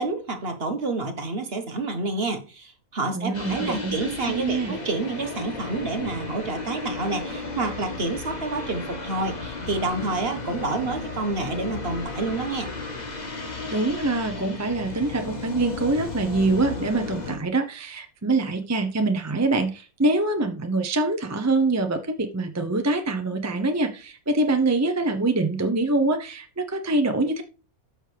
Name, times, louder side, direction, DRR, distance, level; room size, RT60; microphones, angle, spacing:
voice 1, 0.0-12.7, right 3 dB, 40° right, 1.5 m, -29 dB
voice 2, 3.1-3.9 4.2-4.7 13.7-27.4, right 2 dB, 15° right, 0.7 m, -24 dB
sound 1, 3.3-17.4, left 3 dB, 30° left, 1.4 m, -34 dB
12.5 x 6.4 x 3.4 m
omnidirectional pair, 1.6 m